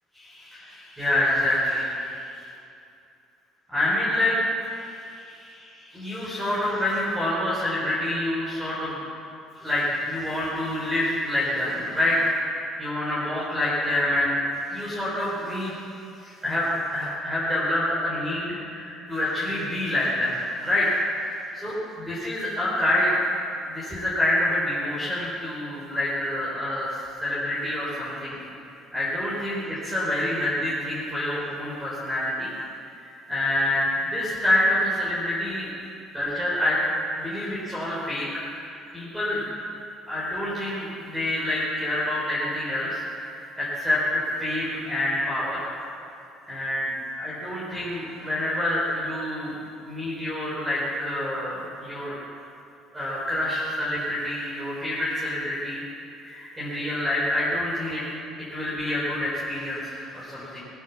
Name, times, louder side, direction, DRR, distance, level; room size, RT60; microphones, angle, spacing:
voice 1, 0.2-2.3 3.7-4.4 4.7-9.0 9.6-14.3 14.7-15.8 16.2-20.9 21.2-23.1 23.6-28.4 28.9-32.5 33.3-35.7 36.1-36.8 37.2-39.5 40.1-45.7 46.5-49.5 49.8-52.2 52.9-55.8 56.2-58.0 58.5-60.6, left 1 dB, 10° right, -8 dB, 4.4 m, -27 dB
19.5 x 9.6 x 7.3 m, 2.6 s
cardioid pair, 140°, 0 cm